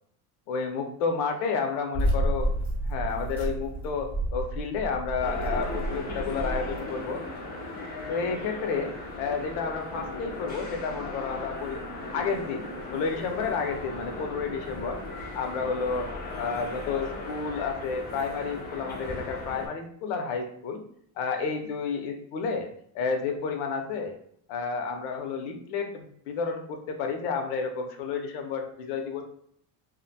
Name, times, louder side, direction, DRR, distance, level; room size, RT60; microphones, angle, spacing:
voice 1, 0.5-2.5 2.8-7.2 8.1-11.8 12.1-15.0 15.3-16.1 16.4-20.8 21.2-22.7 22.9-24.2 24.5-29.2, left 5 dB, 85° left, 4 dB, 0.6 m, -31 dB
sound 1, 1.9-6.8, right 1 dB, 5° left, 0.7 m, -30 dB
sound 2, 5.2-19.7, left 2 dB, 20° left, 0.4 m, -37 dB
2.5 x 2.1 x 2.6 m, 0.65 s
cardioid pair, 145°, 47 cm